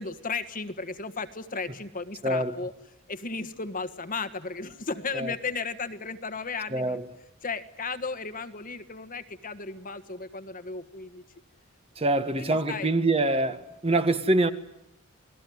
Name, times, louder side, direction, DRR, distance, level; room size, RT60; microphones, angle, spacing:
voice 1, 0.0-2.7 3.1-7.0 7.4-11.2 12.4-12.9, left 4 dB, 40° left, 1.5 m, -35 dB
voice 2, 2.2-2.5 5.1-5.3 6.7-7.0 12.0-14.5, right 2 dB, 30° right, 1.6 m, -25 dB
28.5 x 20.0 x 9.5 m
head